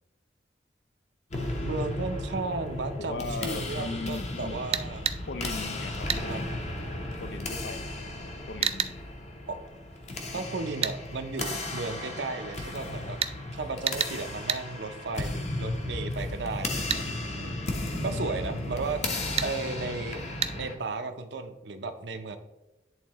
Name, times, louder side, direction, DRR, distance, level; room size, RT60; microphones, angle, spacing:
sound 1, 1.3-20.8, left 2 dB, 40° left, 0.9 m, -35 dB
voice 1, 1.6-5.0 6.3-6.4 9.5-9.6 10.3-13.2 13.5-17.6 18.0-20.2 20.5-22.4, right 3 dB, 85° right, 8 dB, 0.7 m, -35 dB
voice 2, 3.0-4.6 5.3-6.6 7.2-8.0 8.5-9.0 10.3-10.5 12.9-13.2, left 3 dB, 70° left, 12 dB, 0.4 m, -39 dB
sound 2, 4.7-5.2 6.1-6.3 8.6-8.9 10.8-11.0 13.2-13.4 13.9-14.2 14.5-14.6 16.9-17.1 19.4-19.5 20.4-20.5, right 9 dB, 35° right, 0.3 m, -28 dB
10.5 x 3.7 x 3.0 m, 1.0 s
head